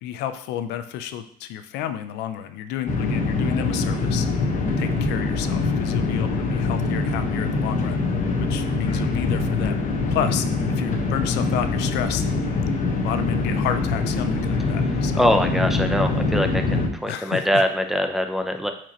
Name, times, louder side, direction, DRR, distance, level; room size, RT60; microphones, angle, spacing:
voice 1, 0.0-4.3 4.8-8.0 8.4-9.8 10.1-12.2 13.0-15.3 17.1-17.6, left 10 dB, 90° left, 10 dB, 0.6 m, -31 dB
sound 1, 2.9-16.9, left 3 dB, 50° left, 1.3 m, -24 dB
sound 2, 3.2-7.3 8.3-10.6 13.9-14.8 15.2-15.6, right 3 dB, 35° right, 1.2 m, -45 dB
voice 2, 15.2-18.7, equal, ahead, 5 dB, 0.6 m, -23 dB
8.8 x 4.6 x 3.0 m, 0.66 s
cardioid pair, 110°, 17 cm